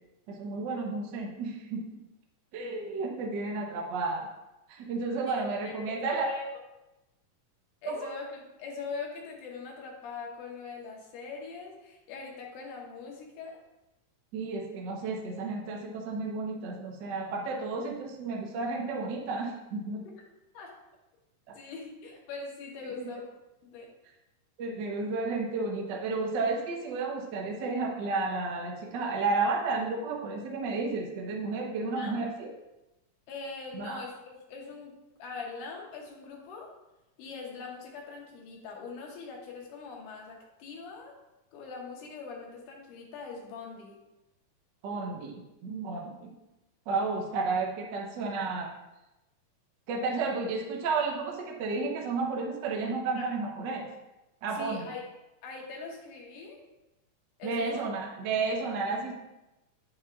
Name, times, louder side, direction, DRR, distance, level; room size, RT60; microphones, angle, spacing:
voice 1, 0.3-1.9 2.5-4.3 4.7-6.2 7.9-8.1 14.3-20.0 21.5-21.6 23.0-23.1 24.6-32.5 33.7-34.0 44.8-46.3 46.9-48.7 49.9-53.9 54.4-54.9 57.4-59.1, right 3 dB, 75° right, 0 dB, 1.0 m, -32 dB
voice 2, 5.3-5.8 6.1-6.5 7.8-13.6 20.5-20.7 21.5-23.2 23.6-23.9 32.0-32.2 33.3-34.9 35.2-36.7 37.2-41.1 41.5-44.0 53.2-53.3 54.5-55.1 55.4-56.6 57.4-57.9, left 4 dB, 85° left, -1 dB, 2.8 m, -42 dB
9.0 x 7.2 x 2.4 m, 0.96 s
omnidirectional pair, 3.6 m